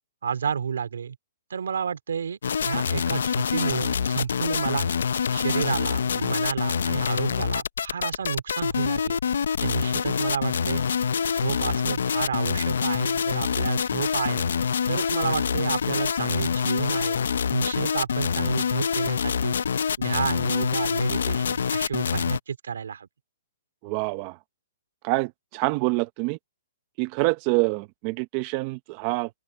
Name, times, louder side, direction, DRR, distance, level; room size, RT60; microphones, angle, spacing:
voice 1, 0.2-1.2 1.5-9.2 9.6-10.8 11.3-14.5 14.9-17.2 17.5-19.6 20.0-23.1, right 7 dB, 85° right, 2.8 m, -31 dB
sound 1, 2.4-22.4, left 7 dB, 80° left, 0.6 m, -26 dB
voice 2, 23.8-24.4 25.0-26.4 27.0-29.3, right 23 dB, 30° right, 1.0 m, -26 dB
open air
hypercardioid pair, 165°, 0 cm